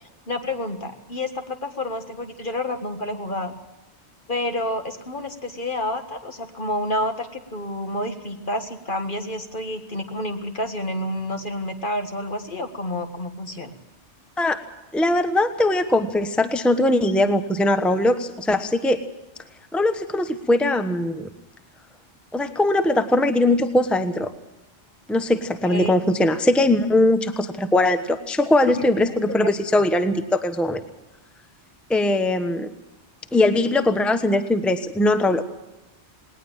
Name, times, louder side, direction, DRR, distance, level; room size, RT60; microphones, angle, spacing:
voice 1, 0.3-3.5 4.3-13.7 25.6-26.0 28.7-29.5, left 1 dB, 50° left, 6 dB, 1.9 m, -29 dB
voice 2, 14.9-19.0 19.7-21.3 22.3-24.3 25.1-30.8 31.9-32.7 33.3-35.4, left 1 dB, ahead, 9 dB, 1.0 m, -20 dB
20.0 x 19.0 x 7.3 m, 0.99 s
omnidirectional pair, 1.1 m